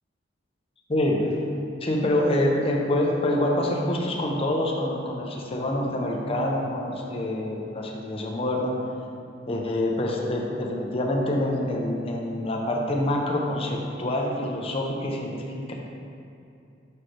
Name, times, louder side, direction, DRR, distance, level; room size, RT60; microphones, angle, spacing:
voice 1, 0.9-1.4 1.8-8.8 9.5-15.7, left 1 dB, 30° left, -1 dB, 0.7 m, -26 dB
5.9 x 5.5 x 3.3 m, 2.6 s
head